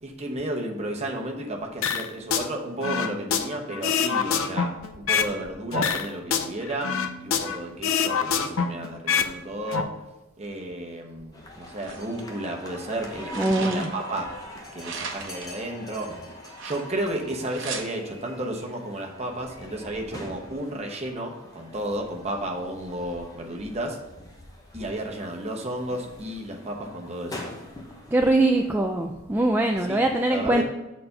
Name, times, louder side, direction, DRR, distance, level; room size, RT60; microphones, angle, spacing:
voice 1, 0.0-9.9 10.4-14.3 14.7-16.1 16.6-24.0 24.7-27.4 29.9-30.6, right 1 dB, 30° right, 1 dB, 1.0 m, -33 dB
sound 1, 1.8-2.5 2.8-5.3 5.7-7.6 7.8-9.3 9.6-9.8, left 6 dB, 65° left, 0.6 m, -25 dB
sound 2, 11.3-28.7, left 1 dB, 15° left, 0.9 m, -44 dB
sound 3, 11.8-12.2 12.9-14.1 14.8-15.6 16.4-17.1 17.5-17.8, right 5 dB, 55° right, 0.9 m, -37 dB
voice 2, 13.3-13.9 28.1-30.6, right 2 dB, 10° right, 2 dB, 0.3 m, -22 dB
6.7 x 4.2 x 6.6 m, 1.0 s
head